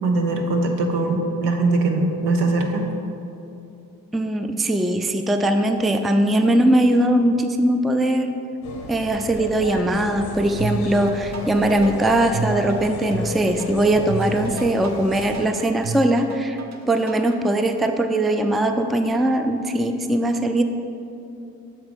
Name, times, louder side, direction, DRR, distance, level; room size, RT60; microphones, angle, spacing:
voice 1, 0.0-2.9, right 2 dB, 80° right, 3 dB, 0.9 m, -21 dB
voice 2, 4.1-8.3 8.9-16.6 16.9-20.6, right 1 dB, ahead, 7 dB, 0.4 m, -20 dB
sound 1, 8.6-15.5, left 4 dB, 80° left, 0.8 m, -33 dB
sound 2, 10.6-17.4, right 4 dB, 45° right, 0.8 m, -31 dB
6.5 x 4.5 x 5.2 m, 2.8 s
hypercardioid pair, 45°, 40 cm